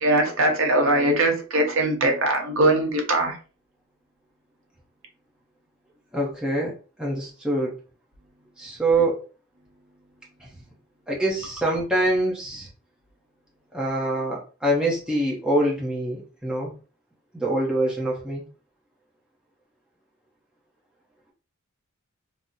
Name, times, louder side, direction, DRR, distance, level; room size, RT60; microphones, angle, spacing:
voice 1, 0.0-3.4, right 1 dB, 65° right, 0.8 m, -21 dB
voice 2, 6.1-7.7 8.6-9.2 10.4-10.5 11.1-12.7 13.7-16.7 17.3-18.4, right 1 dB, 5° right, 0.6 m, -25 dB
2.7 x 2.0 x 3.7 m
head